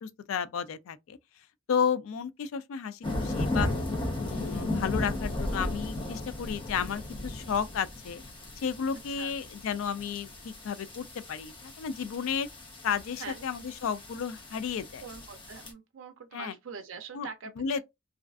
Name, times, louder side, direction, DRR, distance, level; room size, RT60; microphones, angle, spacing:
voice 1, 0.0-1.2 1.7-3.7 4.2-8.2 8.6-12.5 12.8-15.0 16.3-16.5 17.1-17.3 17.6-17.8, left 7 dB, 80° left, 0.3 m, -32 dB
sound 1, 3.0-15.7, left 1 dB, 25° left, 0.6 m, -35 dB
voice 2, 9.1-9.4 13.2-13.5 15.0-17.8, right 5 dB, 70° right, 0.4 m, -44 dB
2.4 x 2.3 x 2.2 m
head